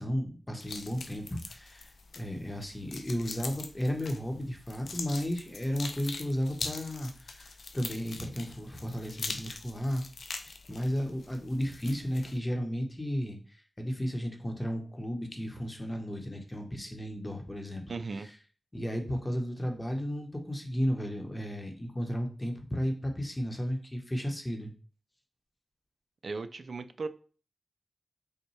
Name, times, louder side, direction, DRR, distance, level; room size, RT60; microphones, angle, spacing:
voice 1, 0.0-10.0 10.5-13.4 13.8-17.8 18.2-18.3 18.7-24.7, equal, 20° left, 3 dB, 0.9 m, -34 dB
sound 1, 0.6-12.4, left 4 dB, 90° left, 0.4 m, -43 dB
voice 2, 17.9-18.3 26.2-27.1, right 4 dB, 70° right, 10 dB, 0.3 m, -36 dB
5.3 x 2.2 x 3.2 m, 0.40 s
cardioid pair, 60°, 0 cm